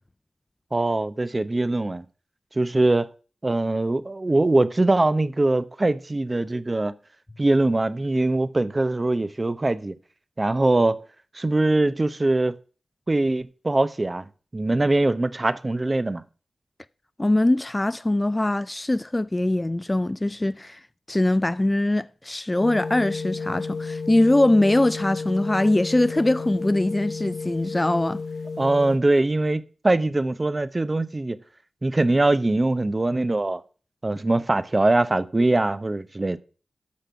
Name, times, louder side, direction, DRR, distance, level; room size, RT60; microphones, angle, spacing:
voice 1, 0.7-2.0 2.5-3.1 3.4-7.0 7.4-9.9 10.4-11.0 11.3-12.6 13.1-14.3 14.5-16.2 28.6-31.4 31.8-33.6 34.0-36.4, right 2 dB, 30° right, 0.8 m, -22 dB
voice 2, 17.2-20.8 21.1-28.2, left 1 dB, 20° left, 0.4 m, -22 dB
sound 1, 22.6-29.0, left 4 dB, 65° left, 1.4 m, -32 dB
8.6 x 6.0 x 5.7 m
cardioid pair, 50°, 0 cm